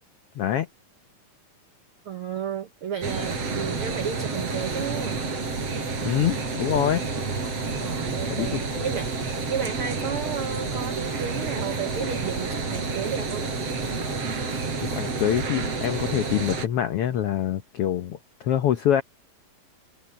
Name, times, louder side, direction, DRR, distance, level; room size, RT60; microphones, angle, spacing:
voice 1, 0.3-0.7 6.0-7.0 8.3-8.6 14.8-19.0, left 10 dB, 80° left, 1.3 m, -25 dB
voice 2, 2.0-5.2 7.7-13.4, right 7 dB, 70° right, 1.3 m, -33 dB
sound 1, 3.0-16.7, right 4 dB, 45° right, 5.1 m, -29 dB
omnidirectional pair, 3.8 m